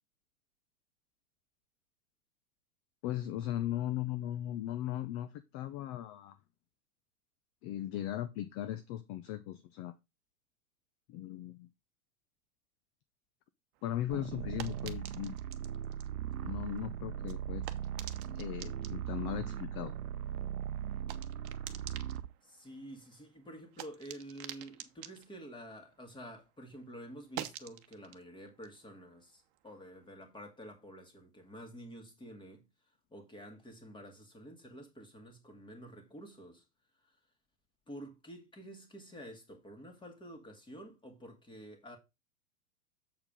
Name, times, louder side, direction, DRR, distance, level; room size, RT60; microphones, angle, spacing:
voice 1, 3.0-6.4 7.6-9.9 11.1-11.7 13.8-15.4 16.4-17.7 18.3-19.9, left 12 dB, 30° left, 0.6 m, -38 dB
sound 1, 13.7-26.5 26.8-30.0, right 12 dB, 45° right, 1.1 m, -50 dB
sound 2, 14.1-22.3, right 10 dB, 75° right, 0.8 m, -39 dB
voice 2, 22.4-32.7 33.1-36.6 37.0-37.2 37.9-42.0, equal, 10° left, 2.2 m, -49 dB
7.5 x 4.7 x 5.2 m
hypercardioid pair, 115°, 45 cm